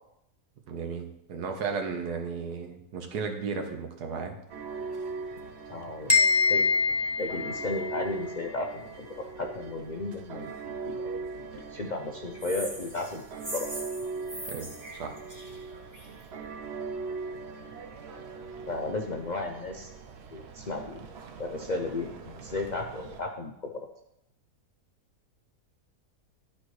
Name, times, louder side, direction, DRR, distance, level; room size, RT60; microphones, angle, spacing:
voice 1, 0.7-4.3 14.5-15.1, right 5 dB, 85° right, 4 dB, 1.5 m, -34 dB
sound 1, 4.5-23.2, right 4 dB, 60° right, 0.7 m, -40 dB
voice 2, 5.7-6.2 6.5-6.7 7.2-11.1 11.7-13.3 13.5-13.7 18.7-19.9 20.3-21.1 21.4-23.9, left 3 dB, 80° left, 3 dB, 0.4 m, -34 dB
sound 2, 6.1-8.1, left 4 dB, 25° left, 0.6 m, -24 dB
sound 3, 12.4-16.2, right 1 dB, 15° right, 1.1 m, -41 dB
12.0 x 4.3 x 3.1 m, 0.81 s
omnidirectional pair, 1.7 m